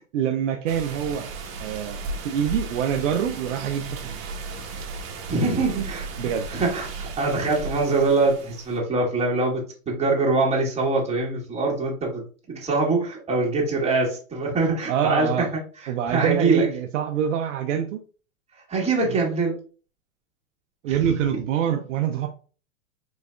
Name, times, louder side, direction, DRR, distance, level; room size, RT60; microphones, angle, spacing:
voice 1, 0.1-1.3 1.6-4.2 6.2-6.5 14.9-15.5 15.9-18.0 19.0-19.2 20.8-22.3, right 9 dB, 65° right, 0.6 m, -25 dB
sound 1, 0.7-8.8, right 3 dB, 40° right, 1.1 m, -35 dB
voice 2, 5.3-15.5 15.8-16.7 18.7-19.6 20.9-21.2, right 3 dB, 15° right, 1.9 m, -24 dB
4.7 x 4.0 x 2.3 m
hypercardioid pair, 110°, 42 cm